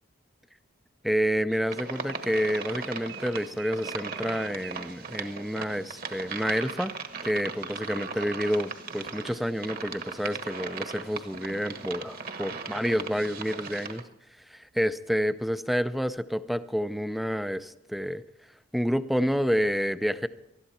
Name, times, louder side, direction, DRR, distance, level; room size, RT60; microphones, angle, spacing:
voice 1, 1.0-6.9 7.2-14.0 14.5-18.2 18.7-20.3, equal, ahead, 12 dB, 0.5 m, -29 dB
sound 1, 1.5-9.2, right 11 dB, 80° right, 4.1 m, -51 dB
sound 2, 1.7-14.0, right 5 dB, 45° right, 1.3 m, -38 dB
20.0 x 13.0 x 4.3 m, 0.87 s
head